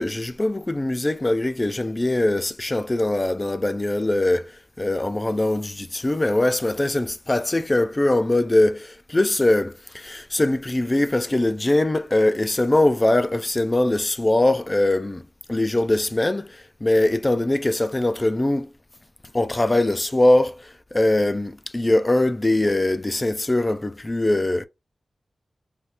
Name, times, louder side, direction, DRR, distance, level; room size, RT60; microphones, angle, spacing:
voice 1, 0.0-4.5 4.8-15.2 15.5-18.7 19.3-24.6, left 1 dB, 20° left, 0.3 m, -22 dB
3.3 x 2.4 x 2.8 m
wide cardioid pair, 125°, 0 cm